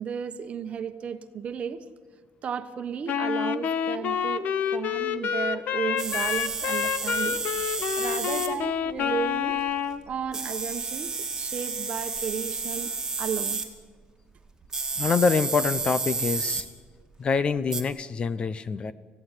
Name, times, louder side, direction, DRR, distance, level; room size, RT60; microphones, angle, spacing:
voice 1, 0.0-1.8 2.4-7.4 8.0-9.6 10.1-12.9 13.2-13.6 16.5-16.6, right 7 dB, 40° right, 1.2 m, -34 dB
Wind instrument woodwind instrument, 3.1-10.0, left 8 dB, 55° left, 1.1 m, -28 dB
sound 1, 6.0-8.5 8.9-9.0 10.3-13.7 14.7-16.7 17.7-17.8, right 4 dB, 15° right, 2.2 m, -31 dB
voice 2, 15.0-16.7 17.2-18.9, left 5 dB, 30° left, 0.7 m, -25 dB
25.5 x 16.5 x 9.8 m
cardioid pair, 150°, 3 cm